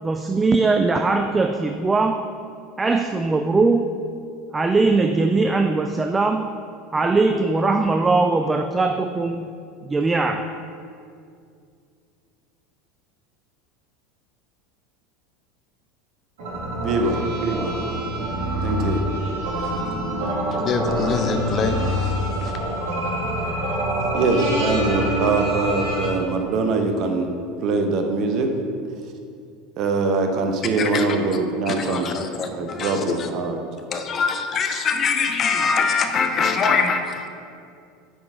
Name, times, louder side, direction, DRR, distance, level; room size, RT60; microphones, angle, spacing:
voice 1, 0.0-2.2 2.8-3.9 4.5-6.5 6.9-9.5 9.9-10.4, right 3 dB, 15° right, 0.3 m, -20 dB
sound 1, 16.4-26.1, right 1 dB, 60° right, 1.3 m, -25 dB
voice 2, 16.8-17.7 18.6-19.0 24.1-27.3 27.6-28.5 29.8-32.1 32.5-33.6, right 3 dB, 45° right, 0.7 m, -23 dB
voice 3, 20.5-22.6 24.0-24.1 30.8-31.0 31.7-33.3 33.9-37.3, left 5 dB, 35° left, 0.6 m, -24 dB
10.0 x 3.9 x 3.7 m
figure-of-eight pair, 75°, 0 cm